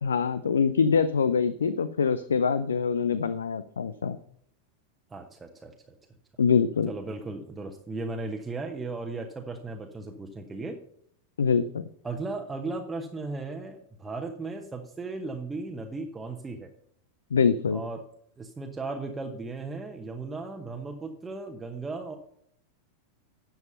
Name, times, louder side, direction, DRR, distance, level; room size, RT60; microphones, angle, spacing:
voice 1, 0.0-4.2 6.4-6.9 11.4-11.9 17.3-17.8, left 6 dB, 70° left, 14 dB, 0.5 m, -24 dB
voice 2, 5.1-5.7 6.9-10.8 12.0-16.7 17.7-18.0 18.4-22.2, right 3 dB, 15° right, 3 dB, 1.0 m, -36 dB
11.0 x 7.1 x 5.5 m, 0.68 s
figure-of-eight pair, 90°, 0 cm